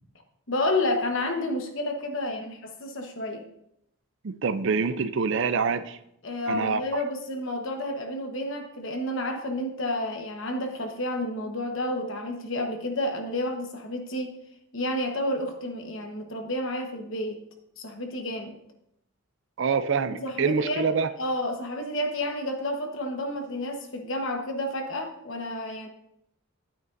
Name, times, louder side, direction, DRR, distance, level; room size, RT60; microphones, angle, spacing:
voice 1, 0.5-3.4 6.2-14.3 14.7-17.4 17.8-18.6 20.1-20.8 21.2-25.9, left 1 dB, 55° left, 4 dB, 1.2 m, -30 dB
voice 2, 4.2-6.0 6.5-7.0 19.6-21.1, right 5 dB, 55° right, 12 dB, 0.4 m, -26 dB
11.0 x 8.9 x 2.6 m, 0.78 s
head